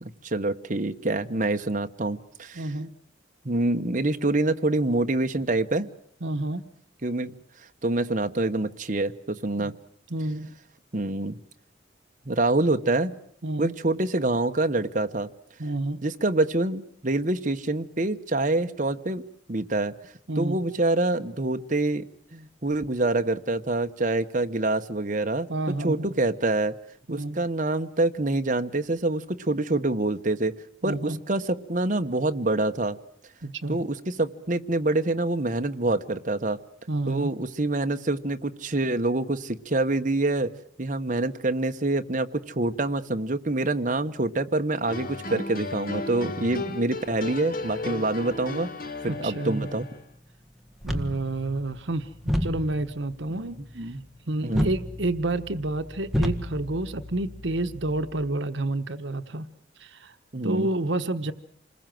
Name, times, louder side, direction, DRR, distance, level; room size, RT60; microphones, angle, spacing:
voice 1, 0.0-2.7 3.4-5.9 7.0-7.3 7.8-9.7 10.9-11.4 12.3-13.1 13.6-15.3 16.0-19.2 19.5-19.9 20.4-22.0 22.3-26.8 27.1-30.5 30.8-33.0 33.7-36.6 37.1-40.5 40.8-48.7 49.0-49.9 53.8-54.0 54.4-54.7 60.3-60.7, right 2 dB, 45° right, 7 dB, 1.2 m, -26 dB
voice 2, 2.5-2.9 6.2-6.7 9.6-9.8 10.1-10.5 13.4-13.7 15.6-16.0 20.3-20.6 25.5-26.1 27.1-27.4 30.8-31.2 33.4-33.8 36.9-37.3 49.1-49.7 50.8-53.9 54.3-59.5 59.8-60.1 60.4-61.3, right 2 dB, 75° right, 9 dB, 1.2 m, -29 dB
sound 1, 44.9-50.0, left 2 dB, 50° left, 1.9 m, -35 dB
sound 2, 50.8-58.2, equal, ahead, 1.7 m, -32 dB
28.0 x 21.0 x 7.8 m, 0.65 s
head